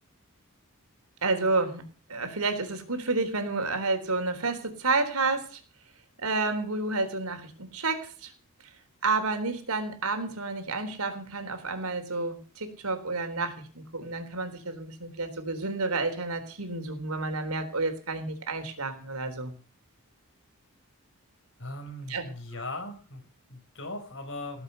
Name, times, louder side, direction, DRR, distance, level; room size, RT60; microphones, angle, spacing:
voice 1, 1.2-1.8 2.1-5.6 6.2-8.3 9.0-19.5 22.1-22.3, right 3 dB, 85° right, 7 dB, 3.8 m, -30 dB
voice 2, 21.6-24.6, left 2 dB, 60° left, 6 dB, 5.2 m, -39 dB
18.0 x 8.3 x 8.1 m, 0.37 s
head